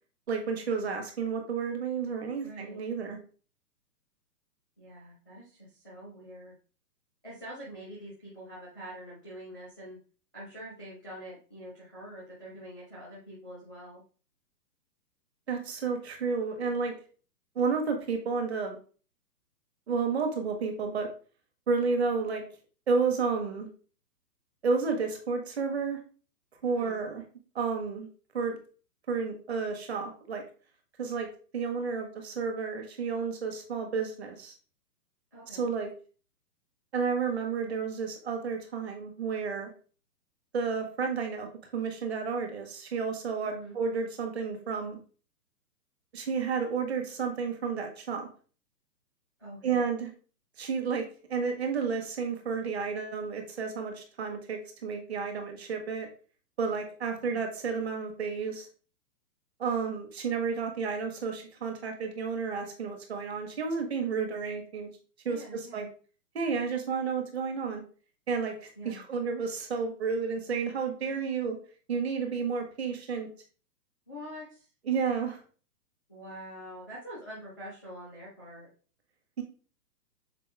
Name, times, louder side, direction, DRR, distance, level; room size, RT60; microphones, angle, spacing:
voice 1, 0.3-3.2 15.5-16.9 17.5-18.8 19.9-21.1 21.7-22.4 22.9-23.7 24.6-26.0 26.6-27.2 27.5-28.1 28.3-28.6 29.1-30.4 31.0-31.3 31.5-34.5 35.5-35.9 36.9-39.7 40.5-45.0 46.1-48.3 49.6-50.1 50.6-56.1 56.6-58.7 59.6-64.9 65.2-65.9 66.3-67.8 68.3-68.5 68.8-71.6 71.9-73.3 74.9-75.4 79.4-79.5, right 5 dB, 40° right, 4 dB, 1.5 m, -31 dB
voice 2, 2.4-2.8 4.8-6.5 7.2-10.0 10.3-14.0 26.6-27.0 35.3-35.7 43.4-43.8 49.4-49.9 57.2-57.5 65.2-65.9 68.8-69.0 71.0-71.4 74.1-74.7 76.1-78.7, equal, 10° right, -6 dB, 0.6 m, -45 dB
6.7 x 4.2 x 3.5 m, 0.39 s
hypercardioid pair, 180°, 50 cm